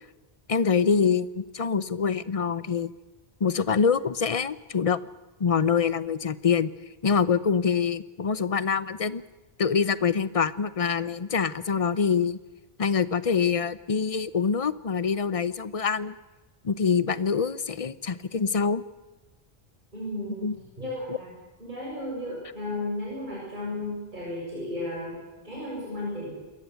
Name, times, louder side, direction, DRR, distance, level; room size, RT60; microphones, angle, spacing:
voice 1, 0.5-2.9 3.4-5.0 5.4-6.7 7.0-9.2 9.6-12.4 12.8-16.2 16.6-18.8 20.4-20.5 21.1-21.2, left 6 dB, 35° left, 16 dB, 0.8 m, -25 dB
voice 2, 19.9-20.5 20.8-21.3 21.6-25.2 25.4-26.3, left 1 dB, 50° right, -4 dB, 7.3 m, -34 dB
27.5 x 14.5 x 8.3 m, 1.2 s
omnidirectional pair, 1.0 m